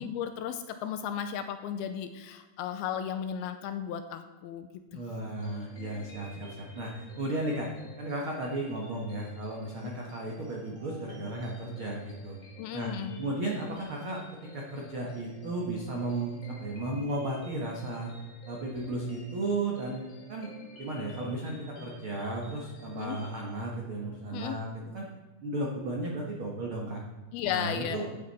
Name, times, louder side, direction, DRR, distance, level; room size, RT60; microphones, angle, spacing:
voice 1, 0.0-5.0 12.6-13.2 22.9-23.2 24.3-24.6 27.3-28.0, left 9 dB, 80° left, 9 dB, 2.4 m, -35 dB
voice 2, 4.9-12.4 12.7-12.9 13.2-14.2 14.5-18.1 18.5-20.0 20.3-20.5 20.8-24.7 24.9-25.1 25.4-27.0 27.4-28.1, right 2 dB, 75° right, -1 dB, 1.2 m, -34 dB
sound 1, 5.4-23.7, left 1 dB, 30° left, 3.3 m, -52 dB
14.0 x 8.6 x 4.2 m, 1.2 s
omnidirectional pair, 4.7 m